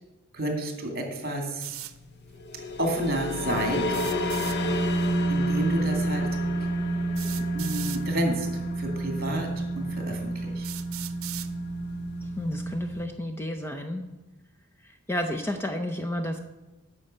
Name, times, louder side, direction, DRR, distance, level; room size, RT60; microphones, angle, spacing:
voice 1, 0.3-1.8 2.8-3.9 4.9-5.0 5.3-6.3 6.6-6.8 7.4-8.5 8.8-10.7, right 1 dB, 45° right, 4 dB, 2.5 m, -30 dB
sound 1, 1.6-1.9 3.9-4.6 6.0-6.1 7.1-8.0 9.0-9.1 9.8-9.9 10.6-11.5, right 14 dB, 80° right, 0.7 m, -38 dB
sound 2, 2.3-13.1, right 1 dB, 55° left, 1.0 m, -29 dB
voice 2, 12.4-14.0 15.1-16.4, left 1 dB, 10° left, 5 dB, 0.6 m, -31 dB
9.9 x 6.1 x 7.7 m, 1.1 s
head